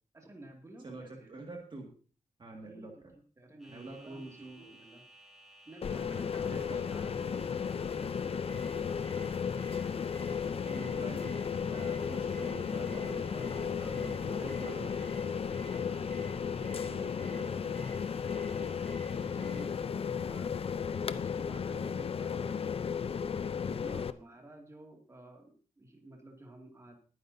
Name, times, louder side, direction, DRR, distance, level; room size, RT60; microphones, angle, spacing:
voice 1, 0.1-1.3 2.7-3.0 3.4-5.0 5.7-9.2 13.8-15.0 15.3-17.2 18.3-20.6 20.9-22.8 23.6-27.0, right 1 dB, 20° right, 1 dB, 2.3 m, -53 dB
voice 2, 0.8-1.9 2.4-2.9 3.7-4.8 6.2-6.6 10.6-15.1 16.6-17.8 23.8-24.0, right 2 dB, 35° right, 1 dB, 2.0 m, -46 dB
sound 1, 3.6-19.9, right 1 dB, ahead, 5.2 m, -57 dB
sound 2, 5.8-24.1, left 6 dB, 45° left, 0.5 m, -34 dB
sound 3, 8.4-19.6, right 2 dB, 85° right, 1.8 m, -55 dB
20.0 x 9.6 x 2.7 m, 0.40 s
wide cardioid pair, 155°, 13 cm